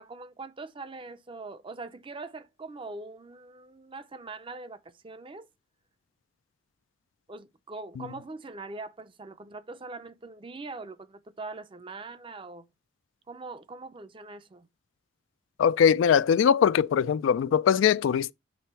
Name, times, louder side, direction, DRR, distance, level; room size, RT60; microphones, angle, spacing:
voice 1, 0.0-5.5 7.3-12.7 13.3-14.7, right 3 dB, 25° right, 0.5 m, -42 dB
voice 2, 15.6-18.3, left 7 dB, 85° left, 0.3 m, -21 dB
8.4 x 3.4 x 4.4 m
head